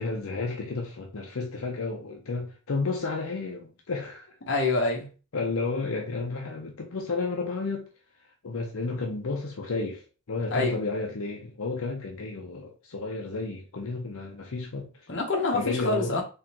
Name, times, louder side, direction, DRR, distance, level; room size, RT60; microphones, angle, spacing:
voice 1, 0.0-4.3 5.3-7.9 8.4-14.9 15.5-16.2, left 3 dB, 85° left, 0.7 m, -32 dB
voice 2, 4.5-5.1 10.5-10.8 15.1-16.2, left 3 dB, 55° left, 1.0 m, -26 dB
3.7 x 3.0 x 2.9 m
head